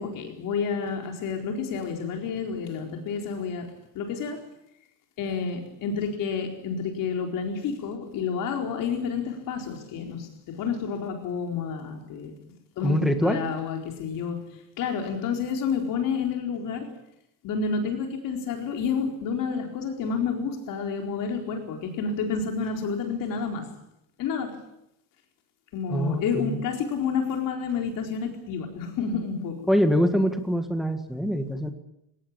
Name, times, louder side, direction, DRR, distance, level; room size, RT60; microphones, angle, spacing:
voice 1, 0.0-4.4 5.2-12.3 12.8-14.4 14.8-16.9 17.4-23.7 24.2-24.6 25.7-29.5, left 6 dB, 55° left, 3 dB, 4.5 m, -29 dB
voice 2, 12.8-13.4 25.9-26.6 29.7-31.7, equal, ahead, 6 dB, 1.8 m, -24 dB
22.5 x 18.5 x 8.9 m, 0.82 s
cardioid pair, 180°, 39 cm